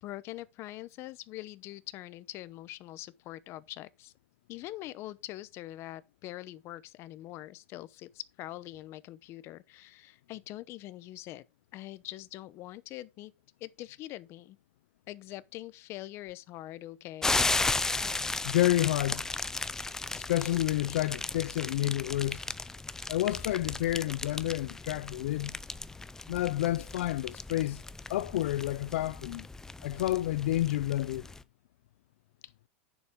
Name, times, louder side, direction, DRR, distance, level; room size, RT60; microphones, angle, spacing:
voice 1, 0.0-4.1 4.5-11.4 11.7-13.3 13.6-14.6 15.1-17.5, left 15 dB, 40° left, 0.8 m, -43 dB
sound 1, 17.2-31.4, left 3 dB, 10° left, 0.5 m, -35 dB
voice 2, 18.4-19.3 20.1-22.4 23.1-25.5 26.3-27.8 28.1-29.5 29.8-31.3, left 15 dB, 75° left, 0.4 m, -29 dB
10.0 x 7.2 x 3.7 m
supercardioid pair, 135°, 7 cm